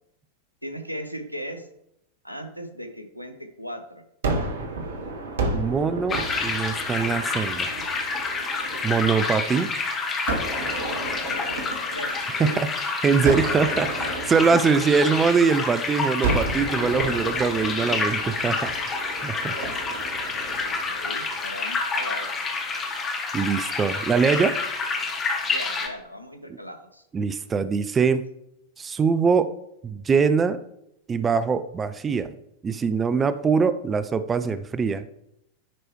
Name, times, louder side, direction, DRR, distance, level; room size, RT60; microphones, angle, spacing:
voice 1, 0.6-1.7 2.2-4.0 10.6-12.7 20.7-22.4 25.5-27.0, equal, 90° right, 6 dB, 0.9 m, -38 dB
Gunshot gunfire, 4.2-9.4 10.3-12.7 13.2-15.7 16.2-21.4, right 3 dB, 65° right, 1.1 m, -32 dB
voice 2, 5.5-7.7 8.8-9.7 12.4-19.5 20.0-20.1 23.3-24.5 27.1-28.2 28.8-29.5 29.8-30.6 31.1-32.3 32.6-35.0, right 5 dB, 20° right, 12 dB, 0.4 m, -23 dB
sound 1, 6.1-25.9, left 4 dB, 25° left, 1.2 m, -28 dB
10.0 x 4.6 x 3.1 m, 0.80 s
figure-of-eight pair, 90°, 0 cm